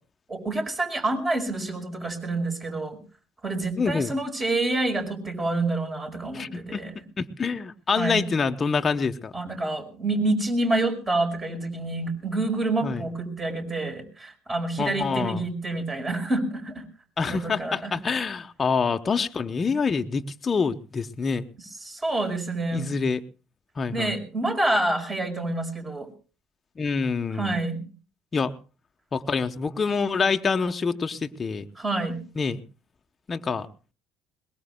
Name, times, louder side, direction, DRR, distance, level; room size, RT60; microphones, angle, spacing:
voice 1, 0.3-3.0 3.4-6.9 8.0-8.3 9.3-16.8 17.3-17.9 21.8-22.9 23.9-26.1 27.3-27.8 31.8-32.2, right 2 dB, 30° right, 4 dB, 5.0 m, -27 dB
voice 2, 3.8-4.1 6.3-6.8 7.2-9.3 12.8-13.1 14.8-15.4 17.2-21.5 22.7-23.2 23.8-24.2 26.8-27.6 28.3-28.5 29.1-31.6 32.4-32.6 33.3-33.7, left 5 dB, 30° left, 6 dB, 0.9 m, -26 dB
22.0 x 20.0 x 2.2 m, 0.34 s
hypercardioid pair, 70°, 0 cm